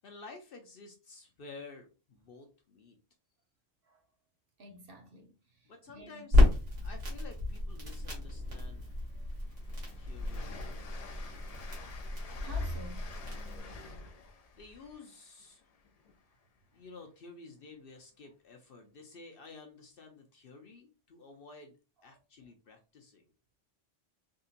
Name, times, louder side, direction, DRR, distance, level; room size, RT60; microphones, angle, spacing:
voice 1, 0.0-3.0 5.6-6.4 6.8-8.9 10.0-11.6 14.5-15.7 16.7-21.7 22.0-23.3, left 4 dB, 55° left, 0.7 m, -52 dB
voice 2, 4.6-6.2 9.2-9.3 12.4-13.5, right 1 dB, 55° right, 0.8 m, -52 dB
Crackle, 6.3-13.6, left 2 dB, 75° right, 1.7 m, -31 dB
Train, 8.2-8.3 8.7-16.4, left 4 dB, 80° left, 0.3 m, -51 dB
3.6 x 2.7 x 2.4 m
omnidirectional pair, 1.3 m